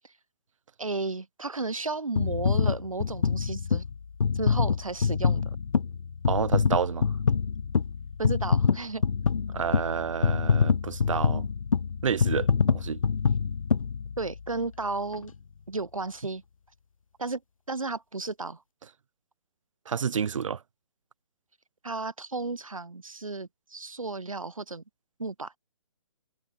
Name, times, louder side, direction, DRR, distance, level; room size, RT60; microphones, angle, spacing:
voice 1, 0.8-3.8 4.3-5.4 8.2-9.0 14.2-15.3 15.7-16.4 17.2-17.4 17.7-18.6 21.8-24.8 25.2-25.5, right 3 dB, 90° right, 2.2 m, -33 dB
sound 1, 2.2-14.6 15.1-15.2, left 6 dB, 90° left, 0.5 m, -26 dB
voice 2, 6.3-7.1 9.5-11.5 12.0-13.0 19.9-20.6, right 7 dB, 70° right, 0.6 m, -29 dB
figure-of-eight pair, 140°, 17 cm